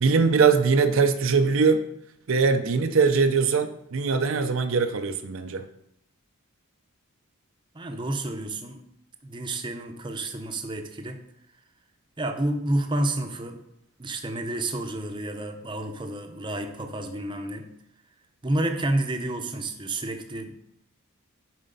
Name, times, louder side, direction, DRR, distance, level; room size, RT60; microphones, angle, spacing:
voice 1, 0.0-1.8 2.3-5.7, right 5 dB, 60° right, 8 dB, 0.5 m, -21 dB
voice 2, 7.7-8.8 9.2-11.2 12.2-13.6 14.0-17.7 18.4-20.5, right 1 dB, 20° right, 5 dB, 0.7 m, -30 dB
7.2 x 5.1 x 5.3 m, 0.76 s
head